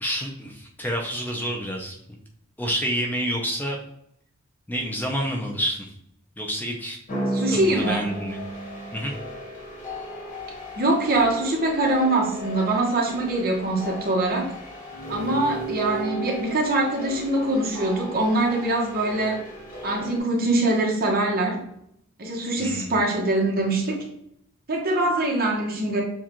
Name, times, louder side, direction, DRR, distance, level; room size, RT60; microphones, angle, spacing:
voice 1, 0.0-2.0 2.6-3.8 4.7-5.9 6.4-7.0 7.5-8.4 8.9-9.1 22.6-22.9, equal, 10° left, 1 dB, 0.5 m, -28 dB
sound 1, 7.1-20.2, right 1 dB, 40° left, 1.4 m, -34 dB
voice 2, 7.3-8.1 10.8-14.5 15.1-19.4 19.8-21.6 22.2-24.0 24.7-26.0, right 2 dB, 45° right, -1 dB, 1.1 m, -23 dB
7.1 x 2.4 x 2.9 m, 0.73 s
head